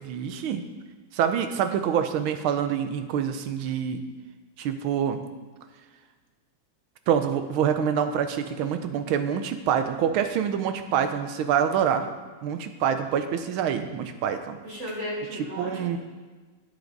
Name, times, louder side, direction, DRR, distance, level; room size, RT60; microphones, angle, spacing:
voice 1, 0.1-0.6 1.1-4.0 4.6-5.2 7.1-12.1 12.4-14.6 15.3-16.0, right 8 dB, 85° right, 8 dB, 1.6 m, -26 dB
voice 2, 14.6-16.0, equal, 35° right, -5 dB, 2.0 m, -35 dB
10.5 x 8.7 x 3.9 m, 1.3 s
omnidirectional pair, 2.2 m